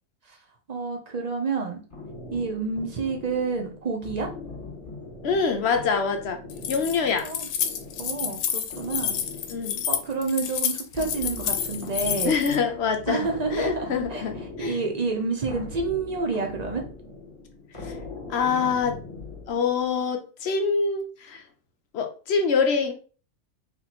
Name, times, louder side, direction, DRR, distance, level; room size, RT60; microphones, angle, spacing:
voice 1, 0.7-1.8 2.3-4.3 7.2-7.5 8.0-9.2 9.9-12.4 13.1-14.2 14.6-16.8, right 4 dB, 65° right, 2 dB, 0.4 m, -29 dB
sound 1, 1.9-20.0, left 3 dB, 20° left, 1.5 m, -41 dB
voice 2, 5.2-6.4 6.7-7.3 9.5-9.8 12.2-14.8 17.8-18.0 18.3-19.0 19.5-21.4 21.9-22.9, left 5 dB, 60° left, 5 dB, 0.7 m, -25 dB
Keys jangling, 6.5-12.6, left 8 dB, 80° left, 1.1 m, -29 dB
3.3 x 2.9 x 4.0 m, 0.38 s
omnidirectional pair, 1.6 m